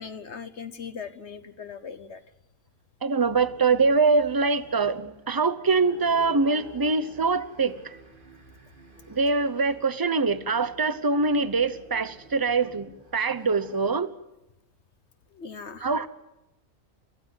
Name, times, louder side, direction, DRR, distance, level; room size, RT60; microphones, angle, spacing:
voice 1, 0.0-2.2 15.3-15.9, left 6 dB, 55° left, 11 dB, 1.2 m, -39 dB
voice 2, 3.0-8.0 9.1-14.1 15.8-16.1, right 4 dB, 20° right, 14 dB, 0.8 m, -24 dB
sound 1, 3.2-14.0, right 2 dB, 40° right, 2.3 m, -50 dB
28.5 x 15.0 x 7.9 m, 0.95 s
omnidirectional pair, 1.4 m